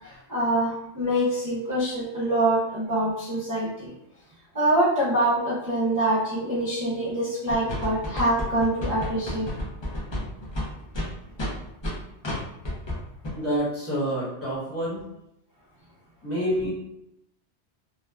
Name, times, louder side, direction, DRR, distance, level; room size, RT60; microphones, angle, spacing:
voice 1, 0.0-3.9 4.5-9.5, right 1 dB, 25° right, -10 dB, 0.5 m, -25 dB
sound 1, 7.5-11.9 12.2-12.4 12.6-13.0 13.2-13.3, left 1 dB, 40° left, 0.4 m, -30 dB
voice 2, 13.3-15.0 16.2-16.7, equal, 15° left, -9 dB, 0.9 m, -27 dB
2.7 x 2.2 x 2.2 m, 0.83 s
omnidirectional pair, 1.1 m